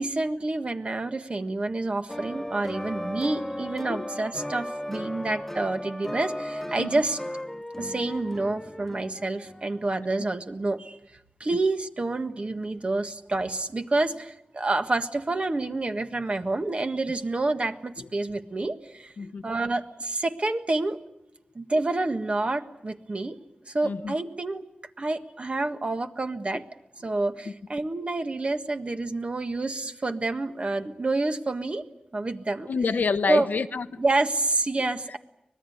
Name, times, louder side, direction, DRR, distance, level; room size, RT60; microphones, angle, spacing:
voice 1, 0.0-7.2 7.8-11.0 11.4-19.1 19.4-21.0 21.5-23.4 23.7-24.7 25.0-26.6 27.0-31.8 32.1-32.7 33.3-33.5 34.0-35.2, right 2 dB, 45° right, 7 dB, 1.6 m, -28 dB
sound 1, 2.1-9.7, left 1 dB, 10° left, 1.3 m, -36 dB
voice 2, 19.2-19.5 23.8-24.1 32.7-34.0, left 5 dB, 85° left, 11 dB, 1.0 m, -27 dB
25.0 x 20.0 x 9.3 m, 0.85 s
wide cardioid pair, 85°, 3 cm